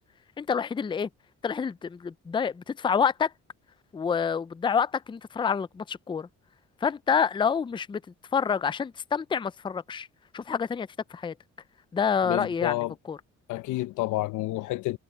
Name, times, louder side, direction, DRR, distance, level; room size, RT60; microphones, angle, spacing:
voice 1, 0.4-1.1 1.4-3.3 3.9-6.3 6.8-8.0 8.3-10.1 10.3-11.3 11.9-13.2, left 6 dB, 15° left, 0.4 m, -27 dB
voice 2, 12.2-12.9 13.5-15.0, left 17 dB, 85° left, 0.6 m, -29 dB
cardioid pair, 90°, 30 cm